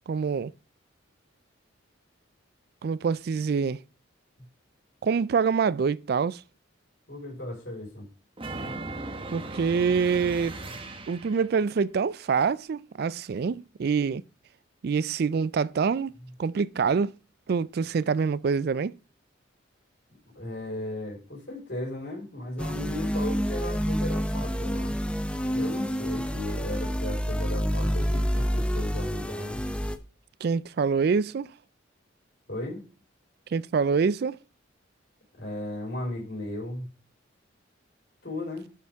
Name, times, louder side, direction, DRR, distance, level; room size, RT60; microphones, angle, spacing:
voice 1, 0.1-0.5 2.8-3.8 5.0-6.4 9.3-10.6 11.1-14.2 14.8-16.1 16.4-17.1 17.5-18.9 30.4-31.5 33.5-34.4, right 5 dB, 50° right, 0.3 m, -25 dB
voice 2, 7.1-8.1 20.3-25.0 25.5-29.6 32.5-32.8 35.4-36.9 38.2-38.7, left 1 dB, 60° left, 4.4 m, -36 dB
sound 1, 8.4-11.6, right 2 dB, 25° right, 1.0 m, -37 dB
sound 2, 22.6-30.0, equal, 5° left, 0.6 m, -28 dB
11.5 x 6.9 x 3.5 m
head